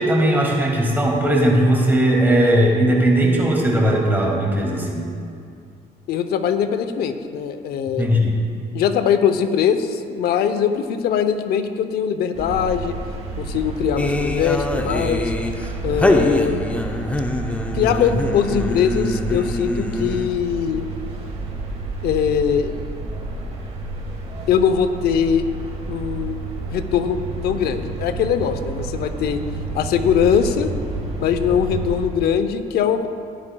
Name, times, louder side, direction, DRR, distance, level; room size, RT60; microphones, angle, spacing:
voice 1, 0.0-5.0 8.0-8.4, right 1 dB, 10° right, -2 dB, 2.2 m, -18 dB
voice 2, 6.1-8.1 8.7-12.9 13.4-15.3 15.8-16.6 17.7-20.9 22.0-22.7 24.5-25.5 25.9-26.4 26.7-29.4 29.7-30.7 31.2-33.1, left 8 dB, 70° left, 9 dB, 0.7 m, -21 dB
sound 1, 12.3-32.1, right 2 dB, 40° right, 2.2 m, -30 dB
sound 2, 14.0-20.5, left 1 dB, 10° left, 0.6 m, -24 dB
16.5 x 9.7 x 2.3 m, 2.4 s
cardioid pair, 110°, 17 cm